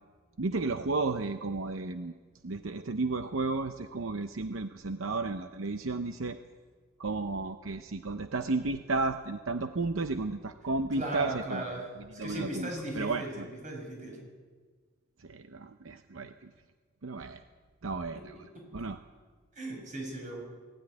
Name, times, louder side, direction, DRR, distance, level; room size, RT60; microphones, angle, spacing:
voice 1, 0.4-2.1 2.4-6.4 7.0-11.6 12.2-13.5 15.2-16.5 17.0-17.4 17.8-18.5 18.7-19.0, right 3 dB, 75° right, 8 dB, 0.8 m, -33 dB
voice 2, 10.9-11.9 12.2-14.2 18.1-18.2 18.5-18.6 19.6-20.4, right 1 dB, 40° right, 1 dB, 6.6 m, -37 dB
19.0 x 15.5 x 9.9 m, 1.5 s
head